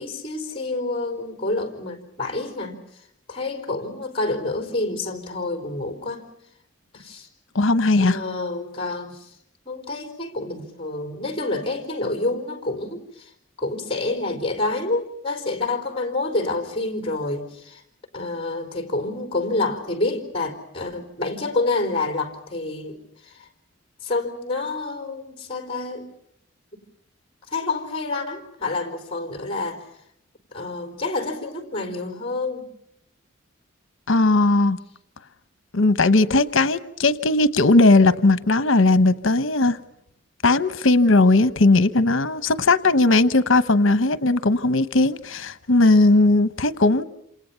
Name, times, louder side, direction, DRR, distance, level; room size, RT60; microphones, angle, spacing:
voice 1, 0.0-6.2 6.9-7.3 8.0-9.4 9.7-13.3 13.6-17.8 18.1-23.5 24.0-26.1 26.7-26.8 27.5-29.9 30.5-32.7 45.9-46.0, left 2 dB, 25° left, 6 dB, 4.1 m, -28 dB
voice 2, 7.5-8.2 34.1-34.8 35.7-39.8 40.4-47.0, left 2 dB, 75° left, 13 dB, 1.0 m, -18 dB
28.0 x 28.0 x 5.8 m, 0.73 s
head